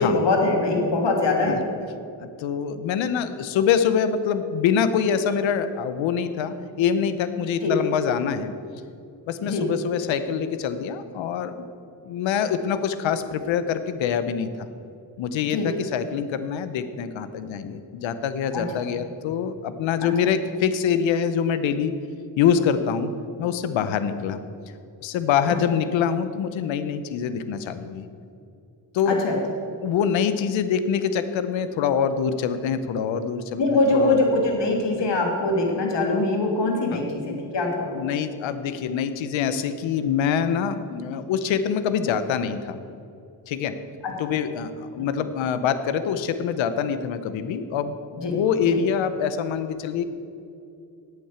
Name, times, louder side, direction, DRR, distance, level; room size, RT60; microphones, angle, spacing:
voice 1, 0.0-1.6 7.6-7.8 9.4-9.7 15.5-15.7 18.5-18.6 20.0-20.3 29.1-29.4 33.6-38.0 44.0-44.1 45.0-45.1 48.2-48.4 48.7-48.8, left 2 dB, 65° left, 1 dB, 2.9 m, -23 dB
voice 2, 2.2-8.5 9.3-11.5 12.0-14.7 15.2-21.9 22.4-23.1 23.4-24.4 25.0-28.1 28.9-29.2 29.8-34.2 36.9-37.0 37.9-42.8 43.5-43.8 44.2-50.0, left 7 dB, 90° left, 11 dB, 0.9 m, -25 dB
11.0 x 8.8 x 8.0 m, 2.5 s
supercardioid pair, 55°, 45 cm